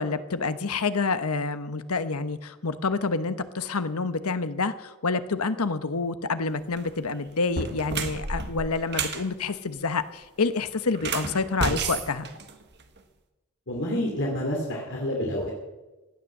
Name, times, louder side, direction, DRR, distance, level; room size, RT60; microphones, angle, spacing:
voice 1, 0.0-12.3, left 4 dB, 80° left, 12 dB, 1.0 m, -28 dB
sound 1, 6.6-6.9 7.4-9.2 10.9-13.0, right 4 dB, 50° right, 1.5 m, -31 dB
voice 2, 13.7-15.5, left 1 dB, 55° left, -1 dB, 2.7 m, -28 dB
16.5 x 9.7 x 7.3 m, 1.1 s
head